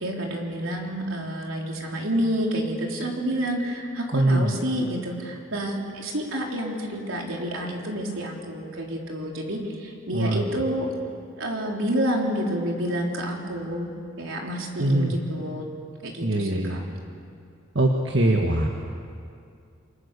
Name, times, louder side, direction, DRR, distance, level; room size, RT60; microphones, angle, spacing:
voice 1, 0.0-10.9 11.4-15.6 16.0-16.8, equal, 80° right, 0 dB, 4.0 m, -29 dB
voice 2, 4.1-4.5 10.1-10.4 14.8-15.1 16.2-16.8 17.7-18.7, right 1 dB, 60° right, 1 dB, 1.7 m, -22 dB
28.0 x 23.5 x 6.9 m, 2.4 s
head